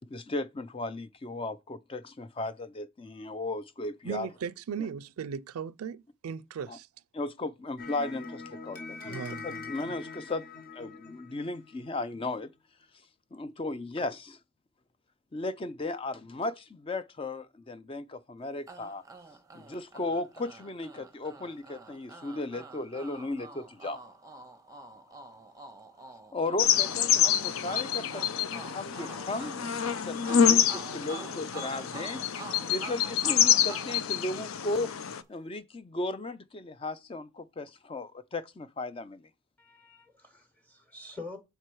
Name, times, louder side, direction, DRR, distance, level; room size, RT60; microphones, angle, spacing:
voice 1, 0.1-4.3 4.8-4.9 6.7-6.8 7.1-10.4 10.7-12.5 13.3-14.4 15.3-19.0 19.5-24.0 26.3-34.9 35.3-39.3, left 2 dB, 25° left, 0.4 m, -36 dB
voice 2, 4.0-6.9 9.0-9.9, right 6 dB, 90° right, 0.4 m, -38 dB
sound 1, 7.8-12.1, left 4 dB, 40° left, 1.1 m, -43 dB
sound 2, 18.7-34.9, right 3 dB, 15° right, 0.7 m, -47 dB
sound 3, 26.6-35.2, left 8 dB, 75° left, 0.5 m, -27 dB
voice 3, 39.6-41.4, left 3 dB, 10° left, 1.2 m, -46 dB
6.7 x 4.5 x 4.6 m
head